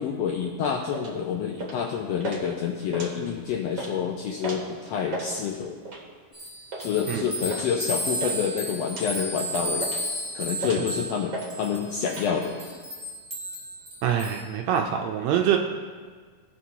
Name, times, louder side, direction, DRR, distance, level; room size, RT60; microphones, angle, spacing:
voice 1, 0.0-5.8 6.8-9.9 10.3-12.6, left 7 dB, 85° left, 2 dB, 1.4 m, -28 dB
sound 1, 0.9-1.1 1.6-1.9 2.2-2.4 2.8-3.4 3.7-3.9 4.4-4.7 5.0-5.3 5.9-6.1 6.7-6.9 7.5-7.7 7.9-8.4 8.9-9.1 9.5-10.1 10.6-10.9 11.3-11.5 11.8-12.3, right 3 dB, 50° right, 1.5 m, -35 dB
sound 2, 6.3-14.4, equal, 10° right, 1.8 m, -33 dB
voice 2, 14.0-15.6, right 9 dB, 75° right, 3 dB, 1.7 m, -25 dB
17.0 x 6.1 x 2.7 m, 1.5 s
omnidirectional pair, 3.5 m